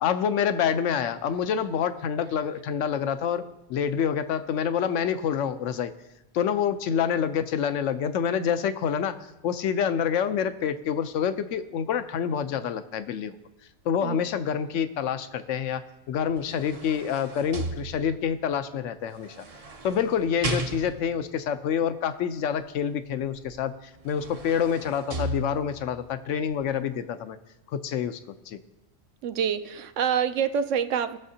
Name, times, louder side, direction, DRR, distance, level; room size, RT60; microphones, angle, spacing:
voice 1, 0.0-3.4 3.7-5.9 6.3-13.4 13.8-15.8 16.1-19.4 19.8-27.4 27.7-28.2 28.5-28.6, left 8 dB, 70° left, 11 dB, 0.9 m, -27 dB
sound 1, 16.2-18.4 19.2-21.2 23.5-23.6 24.0-26.0 26.5-26.6, right 2 dB, 35° right, 0.6 m, -35 dB
voice 2, 29.2-31.2, right 8 dB, 70° right, 10 dB, 0.9 m, -26 dB
19.0 x 6.6 x 2.8 m, 0.95 s
omnidirectional pair, 1.4 m